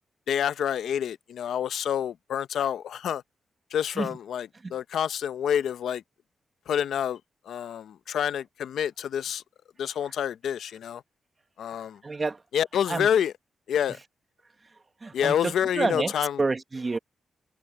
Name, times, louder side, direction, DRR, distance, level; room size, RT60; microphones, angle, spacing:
voice 1, 0.3-3.2 3.7-6.0 6.7-7.2 7.5-9.4 9.8-11.0 11.6-12.0 12.5-13.3 13.7-14.0 15.1-16.4, left 9 dB, 85° left, 0.6 m, -28 dB
voice 2, 12.0-12.4 12.9-13.1 15.0-16.1 16.4-17.0, right 3 dB, 25° right, 1.3 m, -28 dB
wide cardioid pair, 135°, 0 cm